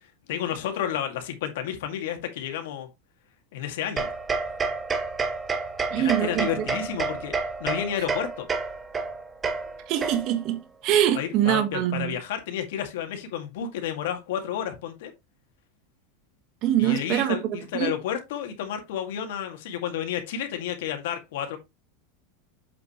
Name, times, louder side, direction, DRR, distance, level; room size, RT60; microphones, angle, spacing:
voice 1, 0.3-2.9 3.5-4.1 5.9-7.3 7.6-8.5 11.1-15.1 16.8-21.6, left 9 dB, 70° left, 2.2 m, -31 dB
sound 1, 4.0-10.5, right 4 dB, 15° right, 1.0 m, -30 dB
voice 2, 5.9-6.6 9.9-12.2 16.6-17.4 17.7-17.9, right 11 dB, 35° right, 1.5 m, -24 dB
7.9 x 5.8 x 3.1 m
supercardioid pair, 165°, 0 cm